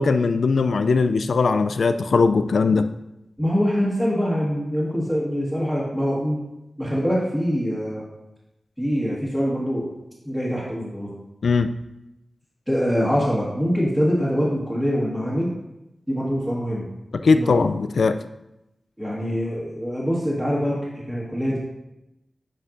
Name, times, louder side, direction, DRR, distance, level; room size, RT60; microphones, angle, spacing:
voice 1, 0.0-2.9 11.4-11.7 17.2-18.2, left 4 dB, 75° left, 10 dB, 0.3 m, -19 dB
voice 2, 3.4-6.4 6.8-8.0 8.8-9.9 10.2-11.1 12.7-15.5 16.1-16.9 17.3-17.5 19.0-21.6, equal, 5° right, -8 dB, 1.5 m, -24 dB
8.6 x 5.6 x 2.6 m, 0.91 s
wide cardioid pair, 115°, 0 cm